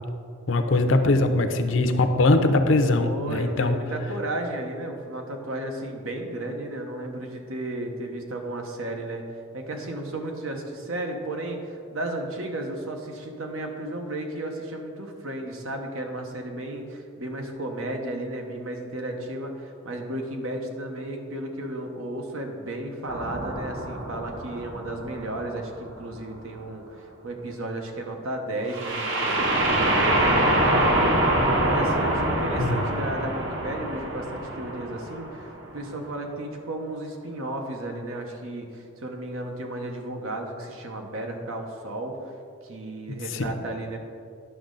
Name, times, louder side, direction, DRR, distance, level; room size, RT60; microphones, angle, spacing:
voice 1, 0.5-3.8 32.6-32.8 43.3-43.5, left 2 dB, 65° left, 7 dB, 0.6 m, -21 dB
voice 2, 3.0-9.2 9.5-42.3 42.6-44.0, right 1 dB, 85° right, 3 dB, 1.1 m, -34 dB
sound 1, 23.1-25.9 28.7-35.6, right 1 dB, 65° right, 1.2 m, -25 dB
10.5 x 6.3 x 3.9 m, 2.4 s
head